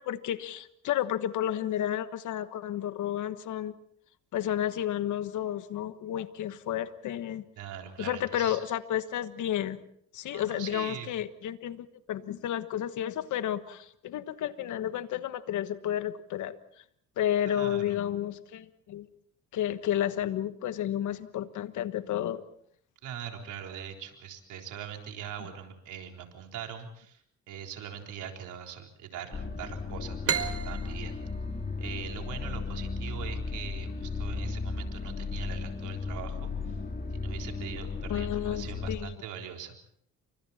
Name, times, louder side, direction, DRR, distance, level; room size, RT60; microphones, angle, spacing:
voice 1, 0.0-3.7 4.3-7.4 8.0-9.8 10.1-16.6 17.2-19.1 19.5-22.4 38.1-39.2, left 11 dB, 80° left, 12 dB, 1.4 m, -31 dB
voice 2, 7.6-8.6 10.3-11.1 17.5-18.0 23.0-27.2 27.5-31.2 31.8-36.8 37.1-39.8, right 8 dB, 85° right, 3 dB, 3.9 m, -42 dB
sound 1, 29.3-39.0, left 4 dB, 30° left, 2.5 m, -35 dB
sound 2, 30.2-33.7, right 7 dB, 50° right, 1.7 m, -35 dB
29.0 x 25.0 x 4.3 m, 0.66 s
cardioid pair, 90°, 30 cm